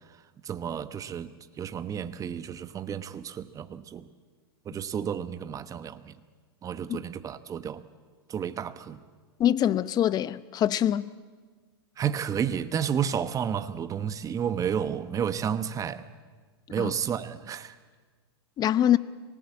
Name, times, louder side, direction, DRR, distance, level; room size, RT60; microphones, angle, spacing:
voice 1, 0.4-1.3 1.6-4.1 4.7-6.2 6.6-7.8 8.3-9.0 12.0-16.0 16.7-17.7, right 8 dB, 25° right, 1.2 m, -31 dB
voice 2, 9.4-11.1 16.8-16.9 18.6-19.0, left 11 dB, 30° left, 0.8 m, -24 dB
25.5 x 18.5 x 8.5 m
hypercardioid pair, 115°, 14 cm